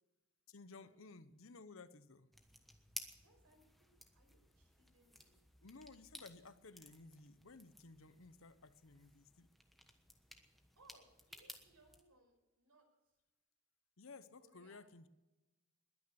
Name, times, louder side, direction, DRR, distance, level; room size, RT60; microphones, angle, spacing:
voice 1, 0.5-2.3 5.6-9.5 14.0-15.1, left 3 dB, 65° left, 13 dB, 0.9 m, -57 dB
sound 1, 2.3-12.0, left 1 dB, ahead, 1.2 m, -57 dB
voice 2, 3.2-3.9 4.1-5.4 10.8-13.2 14.4-14.8, right 2 dB, 85° right, 3 dB, 5.5 m, -69 dB
21.0 x 9.7 x 6.9 m, 1.1 s
head